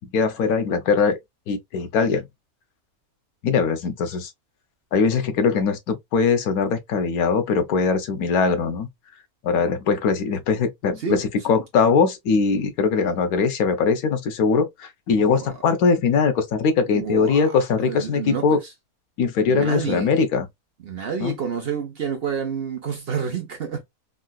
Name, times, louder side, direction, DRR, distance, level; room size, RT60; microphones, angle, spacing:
voice 1, 0.1-1.2 1.5-2.2 3.4-4.3 4.9-8.9 9.4-18.6 19.2-20.5 21.2-21.3, left 5 dB, 85° left, 1.2 m, -21 dB
voice 2, 15.3-15.6 16.9-18.7 19.5-20.1 20.8-23.8, right 6 dB, 55° right, 0.7 m, -29 dB
3.7 x 2.3 x 2.2 m
omnidirectional pair, 1.5 m